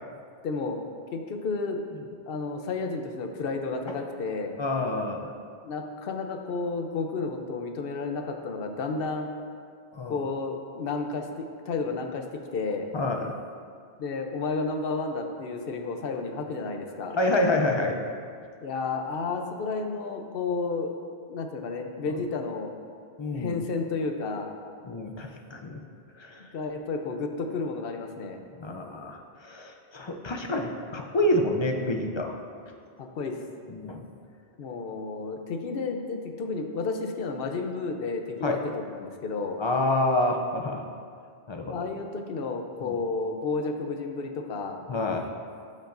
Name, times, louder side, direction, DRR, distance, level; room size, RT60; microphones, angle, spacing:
voice 1, 0.4-0.8 1.1-1.8 2.3-4.6 5.6-9.3 10.0-12.2 12.5-12.9 14.0-17.2 18.6-20.9 21.3-22.7 23.3-24.5 26.5-28.4 33.0-33.4 34.6-39.6 41.7-44.8, left 4 dB, 60° left, 4 dB, 0.8 m, -31 dB
voice 2, 4.6-5.3 9.9-10.2 12.9-13.3 17.1-18.0 23.2-23.6 24.9-25.8 26.2-26.4 28.6-32.4 33.7-34.0 38.4-38.6 39.6-40.8 41.5-41.9 42.8-42.9 44.9-45.2, left 1 dB, 45° left, 3 dB, 0.3 m, -28 dB
12.0 x 5.3 x 2.5 m, 2.2 s
omnidirectional pair, 1.1 m